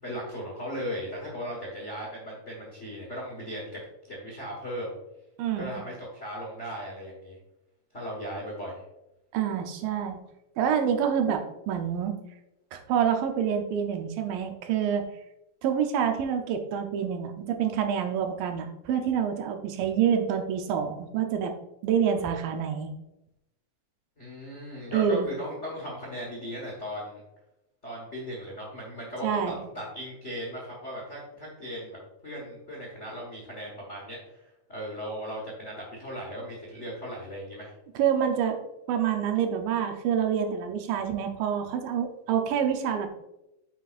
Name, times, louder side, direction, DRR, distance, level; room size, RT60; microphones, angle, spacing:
voice 1, 0.0-3.8 4.1-4.9 5.6-7.4 7.9-8.8 24.2-27.2 27.8-37.7, equal, 85° left, -3 dB, 0.6 m, -37 dB
voice 2, 5.4-5.8 9.3-10.2 10.6-12.2 12.7-15.0 15.6-21.5 21.8-22.9 24.9-25.3 29.2-29.6 38.0-38.6 38.9-43.1, right 8 dB, 80° right, 5 dB, 2.4 m, -27 dB
8.3 x 5.9 x 2.5 m, 0.90 s
omnidirectional pair, 4.0 m